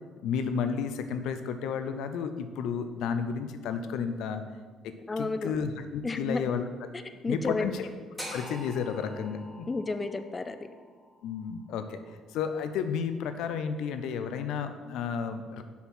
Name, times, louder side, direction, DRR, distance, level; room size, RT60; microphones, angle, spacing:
voice 1, 0.2-4.4 4.8-6.6 7.3-7.9 8.3-9.7 11.2-12.0 12.3-15.6, left 6 dB, 75° left, 9 dB, 0.5 m, -32 dB
voice 2, 5.1-5.5 6.0-6.4 6.9-7.7 9.7-10.6, left 3 dB, 25° left, 10 dB, 0.5 m, -31 dB
sound 1, 8.2-12.3, equal, 5° right, 2.3 m, -45 dB
7.0 x 4.5 x 6.1 m, 1.5 s
supercardioid pair, 80°, 0 cm